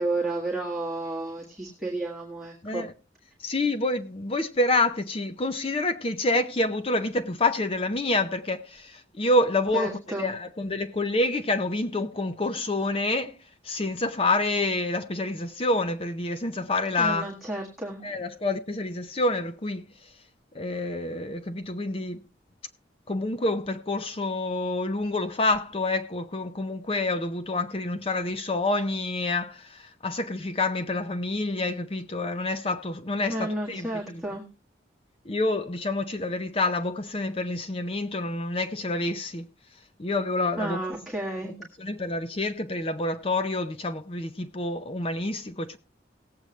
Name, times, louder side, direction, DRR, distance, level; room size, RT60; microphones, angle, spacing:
voice 1, 0.0-2.9 9.7-10.3 17.0-18.1 33.3-34.4 40.6-41.5, right 2 dB, ahead, 1.5 m, -31 dB
voice 2, 3.4-13.3 13.6-17.3 18.0-19.8 20.5-22.2 23.1-34.2 35.3-39.5 40.0-40.8 41.8-45.8, left 2 dB, 30° left, 0.6 m, -28 dB
18.0 x 7.9 x 3.1 m
head